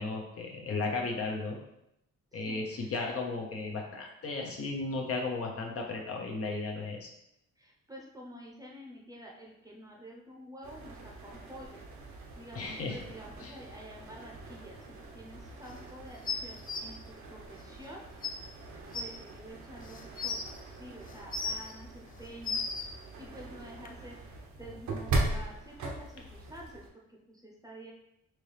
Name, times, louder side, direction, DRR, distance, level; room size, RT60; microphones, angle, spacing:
voice 1, 0.0-1.6 2.3-7.1 12.5-13.0 13.4-13.5, left 3 dB, 50° left, 1 dB, 0.8 m, -35 dB
voice 2, 2.3-2.9 7.6-11.8 12.4-18.1 18.9-20.4 20.8-22.6 23.2-24.2 24.6-27.9, equal, 10° right, -1 dB, 0.8 m, -49 dB
sound 1, 10.6-26.9, right 2 dB, 70° right, 0.9 m, -40 dB
sound 2, 16.3-16.8 17.8-17.9 18.2-18.3 18.9-19.0 19.8-20.4 21.1-21.7 22.2-22.9 23.9-24.0, left 4 dB, 30° left, 0.5 m, -34 dB
4.3 x 2.7 x 3.3 m, 0.82 s
cardioid pair, 90°, 30 cm